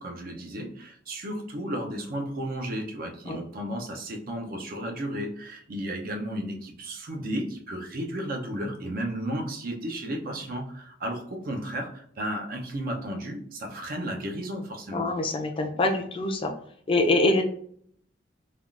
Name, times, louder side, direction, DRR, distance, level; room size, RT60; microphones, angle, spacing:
voice 1, 0.0-15.0, right 1 dB, 55° right, 2 dB, 0.6 m, -33 dB
voice 2, 14.9-16.5 16.9-17.4, left 2 dB, 30° left, 3 dB, 0.4 m, -24 dB
3.4 x 2.3 x 2.4 m, 0.62 s
head